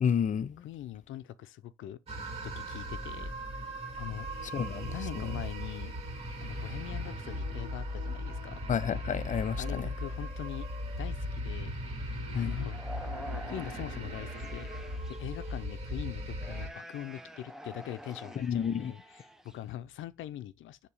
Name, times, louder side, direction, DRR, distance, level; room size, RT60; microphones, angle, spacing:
voice 1, 0.0-0.6 4.5-5.2 8.7-9.9 12.3-12.7 18.4-18.9, left 7 dB, 40° left, 0.5 m, -31 dB
voice 2, 0.6-2.0 2.4-3.3 4.0-4.3 4.9-5.9 6.4-8.6 9.6-10.7 11.0-11.8 12.3-14.7 15.2-20.8, left 12 dB, 80° left, 0.6 m, -42 dB
sound 1, 2.1-16.7, equal, 30° right, 2.7 m, -38 dB
sound 2, 11.5-11.6 12.2-15.7 16.3-19.7, equal, ahead, 0.9 m, -47 dB
6.9 x 2.9 x 4.8 m
cardioid pair, 90°, 20 cm